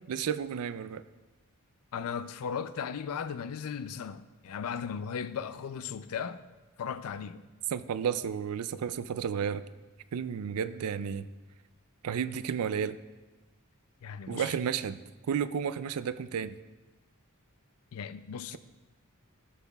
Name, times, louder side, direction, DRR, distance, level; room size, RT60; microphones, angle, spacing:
voice 1, 0.1-1.0 7.7-9.6 10.1-11.2 12.0-13.0 14.3-15.0 15.3-16.6, right 7 dB, 75° right, 0.4 m, -32 dB
voice 2, 1.9-6.4 6.8-7.5 14.0-14.6 17.9-18.6, left 7 dB, 70° left, 0.4 m, -36 dB
13.5 x 7.2 x 2.3 m
head